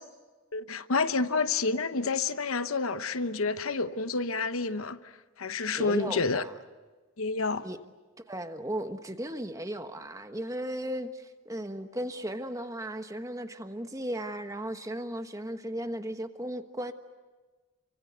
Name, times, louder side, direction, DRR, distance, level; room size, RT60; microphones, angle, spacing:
voice 1, 0.5-5.1 5.4-6.4 7.2-7.6, left 4 dB, 75° left, 1.0 m, -29 dB
voice 2, 5.7-6.5 7.6-7.8 8.3-16.9, right 1 dB, 15° right, 1.2 m, -36 dB
29.0 x 24.5 x 8.1 m
head